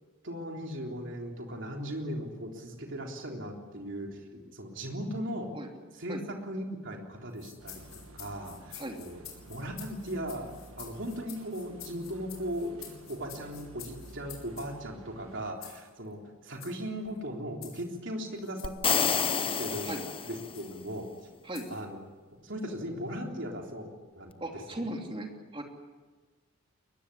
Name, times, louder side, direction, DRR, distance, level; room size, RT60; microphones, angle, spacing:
voice 1, 0.2-5.5 6.0-19.2 19.5-20.0 20.3-21.1 21.7-22.0 22.4-24.3 24.7-24.9, equal, 55° right, 1 dB, 3.6 m, -38 dB
sound 1, 7.3-14.7 15.6-15.9 16.5-16.8 17.6-17.9 18.4-18.8 19.6-19.9 20.5-20.7 21.5-21.8, left 11 dB, 70° left, 6.0 m, -49 dB
sound 2, 7.6-15.5, right 1 dB, 75° right, 1.7 m, -51 dB
sound 3, 18.6-20.7, left 6 dB, 25° left, 0.7 m, -29 dB
voice 2, 24.4-25.6, right 1 dB, 25° right, 2 dB, 3.0 m, -37 dB
23.0 x 20.5 x 9.9 m, 1.3 s
head